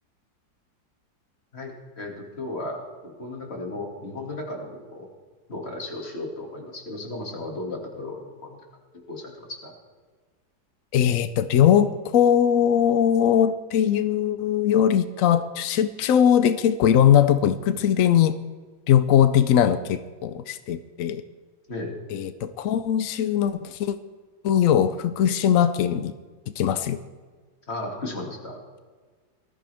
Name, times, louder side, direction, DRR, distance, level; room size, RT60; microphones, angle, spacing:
voice 1, 1.5-5.1 5.5-8.6 9.1-9.7 21.7-22.0 27.7-28.6, left 2 dB, 35° left, 0 dB, 2.5 m, -35 dB
voice 2, 10.9-18.3 18.9-21.2 22.1-24.0 24.4-26.1 26.5-27.0, left 9 dB, 80° left, 12 dB, 0.7 m, -20 dB
19.5 x 13.5 x 3.5 m, 1.5 s
omnidirectional pair, 2.0 m